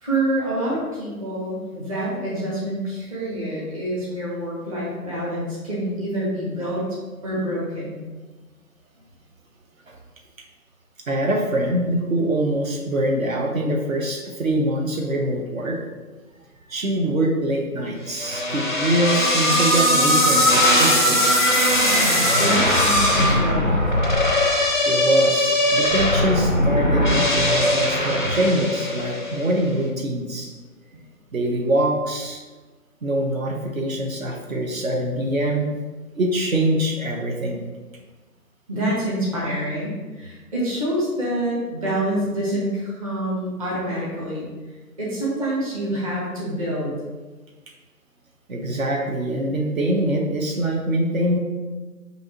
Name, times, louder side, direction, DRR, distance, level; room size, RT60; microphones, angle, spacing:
voice 1, 0.0-6.9 7.2-8.0 22.3-24.0 38.7-44.5 45.0-46.9, right 1 dB, 25° right, -6 dB, 0.8 m, -26 dB
voice 2, 11.1-15.8 16.7-21.2 24.9-30.5 31.3-32.4 33.0-35.7 36.1-37.6 48.5-51.4, right 1 dB, 60° right, 0 dB, 0.8 m, -24 dB
sound 1, 18.1-29.4, left 1 dB, 35° left, 0.4 m, -19 dB
6.2 x 2.7 x 2.9 m, 1.3 s
figure-of-eight pair, 150°, 47 cm